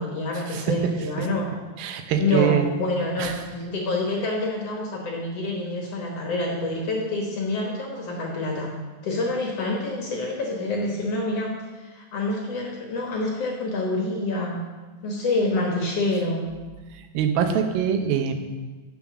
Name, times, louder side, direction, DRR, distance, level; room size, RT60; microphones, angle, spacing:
voice 1, 0.0-1.5 2.2-8.7 9.0-14.6 15.0-16.4, left 2 dB, 60° left, 0 dB, 1.8 m, -27 dB
voice 2, 1.8-2.7 3.2-3.4 16.9-18.3, right 8 dB, 90° right, 6 dB, 2.7 m, -24 dB
8.8 x 7.4 x 6.0 m, 1.3 s
omnidirectional pair, 4.1 m